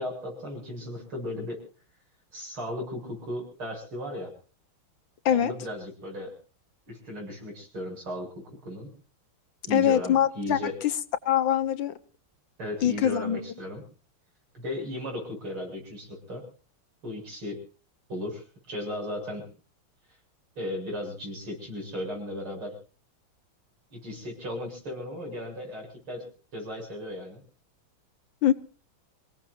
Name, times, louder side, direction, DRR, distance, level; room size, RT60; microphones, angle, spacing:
voice 1, 0.0-1.6 2.3-4.3 5.3-6.3 6.9-8.3 8.6-8.9 9.7-10.8 12.6-13.8 14.5-16.4 17.0-17.6 18.1-19.5 20.6-22.8 23.9-27.4, left 1 dB, 85° right, 1 dB, 8.4 m, -36 dB
voice 2, 9.7-10.6 11.3-11.9 12.8-13.4 28.4-28.5, left 10 dB, 65° left, 11 dB, 1.7 m, -23 dB
28.5 x 18.0 x 2.7 m, 0.37 s
omnidirectional pair, 2.3 m